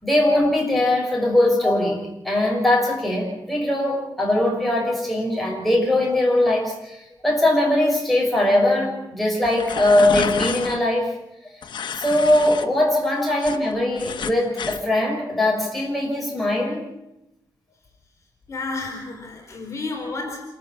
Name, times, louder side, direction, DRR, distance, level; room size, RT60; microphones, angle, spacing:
voice 1, 0.0-7.0 7.2-11.1 11.9-16.9, left 1 dB, ahead, -2 dB, 6.0 m, -21 dB
sound 1, 9.4-10.8 11.6-12.7 13.0-14.8, left 7 dB, 85° left, 1.3 m, -30 dB
voice 2, 18.5-20.4, left 3 dB, 40° left, 0 dB, 4.4 m, -32 dB
27.5 x 14.0 x 7.5 m, 0.87 s
wide cardioid pair, 150°, 8 cm